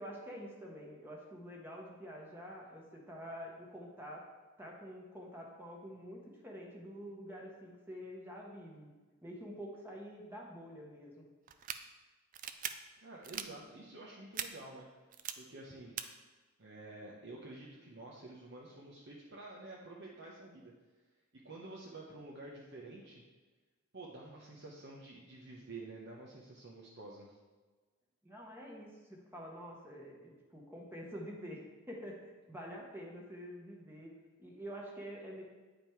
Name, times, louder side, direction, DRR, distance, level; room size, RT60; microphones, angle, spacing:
voice 1, 0.0-4.3 4.6-8.9 9.2-11.2 28.2-34.1 34.4-35.4, equal, 10° right, -2 dB, 1.1 m, -47 dB
sound 1, 11.5-11.8 12.3-12.7 13.2-13.5 14.3-14.5 15.1-15.3 16.0-16.1, right 10 dB, 40° right, 0.4 m, -39 dB
voice 2, 13.0-14.9 15.4-15.9 16.6-20.7 21.4-23.2 23.9-27.4, right 2 dB, 60° right, -3 dB, 0.9 m, -49 dB
9.1 x 5.2 x 4.6 m, 1.3 s
head